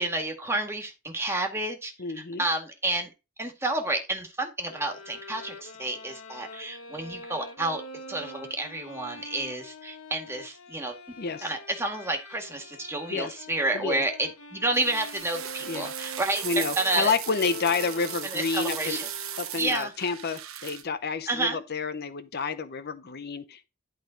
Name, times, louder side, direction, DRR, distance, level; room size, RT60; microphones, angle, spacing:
voice 1, 0.0-3.1 3.4-7.8 8.1-11.0 11.4-17.1 18.2-19.1 19.6-19.9 21.3-21.6, right 2 dB, 10° right, 1.9 m, -30 dB
voice 2, 2.0-2.5 11.2-11.5 13.1-13.3 13.7-14.0 15.7-15.9 16.4-19.0 19.4-23.7, left 4 dB, 50° left, 0.7 m, -29 dB
sound 1, 4.7-19.8, left 1 dB, 85° left, 1.5 m, -44 dB
sound 2, 14.7-20.8, right 11 dB, 75° right, 1.0 m, -37 dB
11.5 x 3.9 x 5.1 m
head